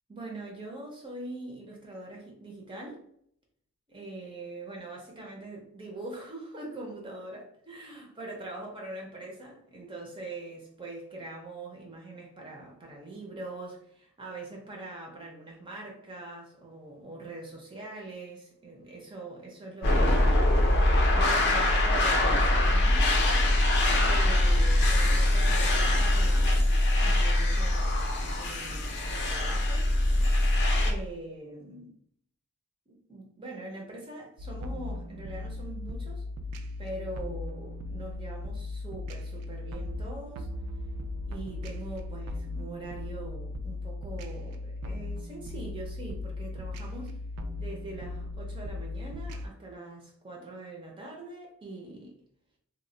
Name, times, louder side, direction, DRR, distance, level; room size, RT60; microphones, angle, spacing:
voice 1, 0.1-3.0 3.9-20.4 21.1-23.4 24.0-26.7 27.0-29.9 30.8-31.9 32.9-36.2 36.8-40.5 41.3-47.2 47.6-52.2, right 2 dB, 25° right, 0 dB, 0.4 m, -43 dB
sound 1, 19.8-30.9, left 1 dB, 50° left, 0.5 m, -23 dB
sound 2, 34.4-49.5, left 2 dB, 85° right, 0.3 m, -37 dB
2.1 x 2.0 x 3.6 m, 0.67 s
head